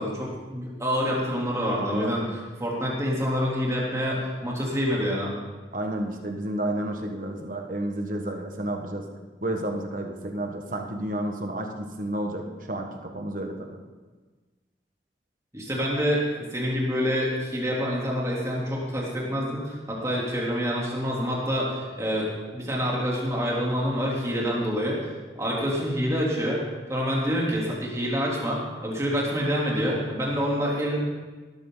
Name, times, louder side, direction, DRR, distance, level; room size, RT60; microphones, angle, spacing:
voice 1, 0.0-2.2 2.6-5.3 15.5-25.0 25.4-26.6 26.9-31.0, equal, 15° right, -4 dB, 3.4 m, -27 dB
voice 2, 5.7-9.1 9.4-13.8, right 1 dB, 50° right, 3 dB, 1.5 m, -31 dB
17.5 x 13.0 x 4.0 m, 1.3 s
head